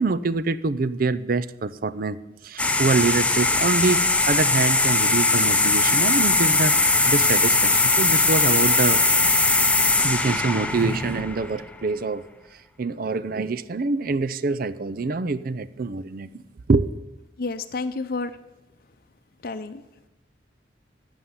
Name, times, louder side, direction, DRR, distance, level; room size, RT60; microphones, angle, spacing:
voice 1, 0.0-2.2 2.4-9.0 10.0-12.2 12.8-16.3 16.7-16.9, right 3 dB, 50° right, 14 dB, 0.5 m, -25 dB
sound 1, 2.6-11.7, left 3 dB, 5° left, 0.7 m, -20 dB
voice 2, 17.4-18.3 19.4-19.8, left 3 dB, 50° left, 8 dB, 0.7 m, -30 dB
11.5 x 7.2 x 9.6 m, 0.98 s
head